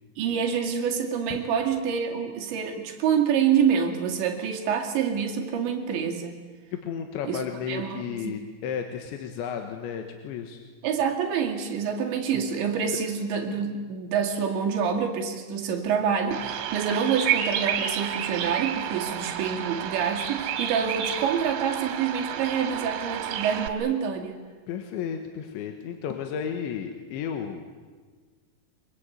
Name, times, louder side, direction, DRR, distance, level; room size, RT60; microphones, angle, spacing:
voice 1, 0.2-6.3 7.3-7.4 7.7-8.4 10.8-24.4, right 7 dB, 65° right, 2 dB, 4.2 m, -27 dB
voice 2, 6.7-10.6 12.9-13.0 24.7-27.7, left 7 dB, 70° left, 5 dB, 3.5 m, -33 dB
Bird vocalization bird call bird song, 16.3-23.7, right 10 dB, 80° right, 4.4 m, -30 dB
24.5 x 23.0 x 9.1 m, 1.5 s
omnidirectional pair, 6.0 m